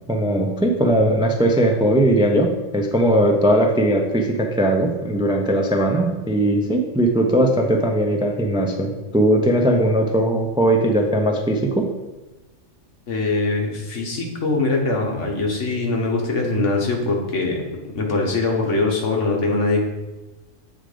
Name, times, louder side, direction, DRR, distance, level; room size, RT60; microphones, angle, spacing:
voice 1, 0.1-11.9, right 1 dB, 10° right, 3 dB, 0.3 m, -19 dB
voice 2, 13.1-17.6 17.9-19.8, left 3 dB, 65° left, 0 dB, 1.5 m, -22 dB
7.9 x 3.8 x 5.0 m, 1.1 s
omnidirectional pair, 1.3 m